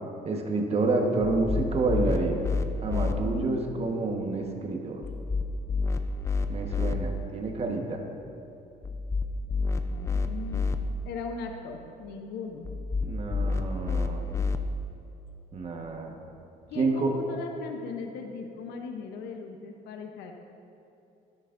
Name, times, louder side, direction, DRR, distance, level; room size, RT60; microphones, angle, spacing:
voice 1, 0.2-2.4 2.8-5.0 6.5-8.0 13.0-14.2 15.5-16.1 16.7-17.2, right 3 dB, 35° right, 2 dB, 1.4 m, -28 dB
sound 1, 1.2-3.1 5.0-7.0 8.8-10.8 12.6-14.6, left 4 dB, 15° left, 0.5 m, -29 dB
voice 2, 3.0-3.9 9.7-12.7 16.7-20.3, left 4 dB, 85° left, 4 dB, 0.9 m, -39 dB
13.0 x 12.0 x 2.6 m, 2.9 s
cardioid pair, 110°, 17 cm